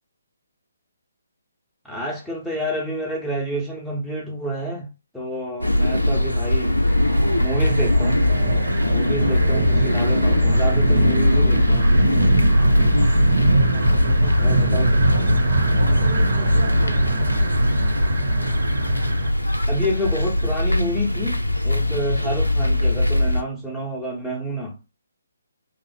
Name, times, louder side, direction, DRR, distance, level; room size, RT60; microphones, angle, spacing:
voice 1, 1.8-6.8 7.4-8.3 8.9-11.9 14.4-14.9 19.7-24.8, equal, ahead, 0.9 m, -28 dB
sound 1, 5.6-23.4, left 1 dB, 80° left, 0.5 m, -20 dB
sound 2, 6.9-19.3, right 3 dB, 35° right, 1.0 m, -25 dB
voice 2, 13.4-15.4 15.8-17.1, right 2 dB, 55° right, 1.1 m, -38 dB
3.2 x 2.0 x 3.5 m
figure-of-eight pair, 140°, 0 cm